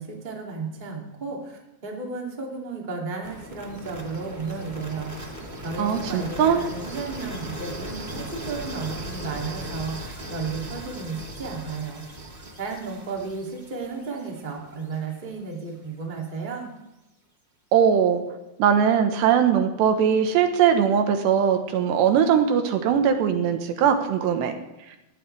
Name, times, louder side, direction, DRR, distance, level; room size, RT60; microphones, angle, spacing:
voice 1, 0.0-5.1 5.6-12.0 12.6-16.7, right 4 dB, 15° right, -1 dB, 1.7 m, -33 dB
sound 1, 3.2-15.1, right 1 dB, 60° right, 0.4 m, -38 dB
voice 2, 5.8-6.6 17.7-18.2 18.6-24.5 24.9-25.0, right 8 dB, 75° right, 6 dB, 3.2 m, -20 dB
19.0 x 14.5 x 3.4 m, 0.97 s
omnidirectional pair, 5.2 m